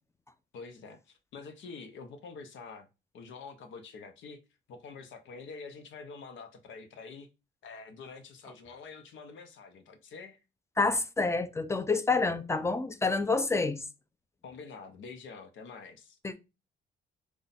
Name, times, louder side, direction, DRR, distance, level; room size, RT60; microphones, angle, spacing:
voice 1, 0.5-2.9 3.1-4.4 4.7-7.3 7.6-10.4 14.4-16.2, left 4 dB, 75° left, 0.8 m, -46 dB
voice 2, 10.8-13.8 16.2-16.4, left 3 dB, 15° left, 0.5 m, -28 dB
4.9 x 2.3 x 4.1 m
cardioid pair, 90°, 20 cm